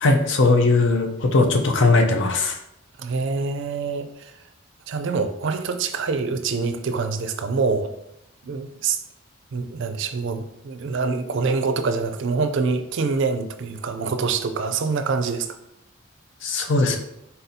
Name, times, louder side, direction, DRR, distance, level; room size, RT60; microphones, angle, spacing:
voice 1, 0.0-2.6 16.4-17.0, left 3 dB, 65° left, 4 dB, 0.6 m, -19 dB
voice 2, 3.0-4.3 4.9-7.9 8.4-9.0 9.5-15.5, right 4 dB, 65° right, 8 dB, 0.4 m, -25 dB
4.1 x 4.0 x 2.7 m, 0.82 s
head